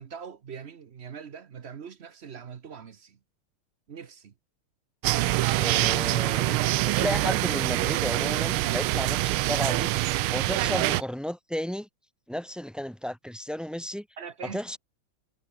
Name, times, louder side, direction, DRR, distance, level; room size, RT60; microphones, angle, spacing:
voice 1, 0.0-3.2 3.9-4.3 14.2-14.6, right 7 dB, 50° right, 0.8 m, -42 dB
sound 1, 5.0-11.0, right 17 dB, 85° right, 1.5 m, -25 dB
voice 2, 5.6-9.9 10.3-11.9 12.3-14.0 14.4-14.8, equal, ahead, 0.6 m, -33 dB
omnidirectional pair, 2.3 m